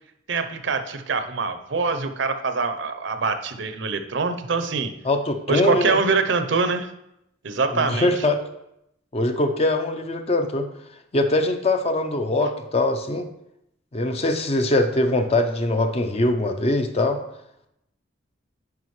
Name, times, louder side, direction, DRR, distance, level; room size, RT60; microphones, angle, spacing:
voice 1, 0.3-4.9 5.5-6.9 7.4-8.1, right 4 dB, 65° right, 9 dB, 0.6 m, -24 dB
voice 2, 5.0-6.0 7.7-8.4 9.1-10.7 11.1-13.3 13.9-17.2, left 2 dB, 30° left, 6 dB, 0.6 m, -22 dB
9.5 x 5.1 x 3.1 m, 0.81 s
head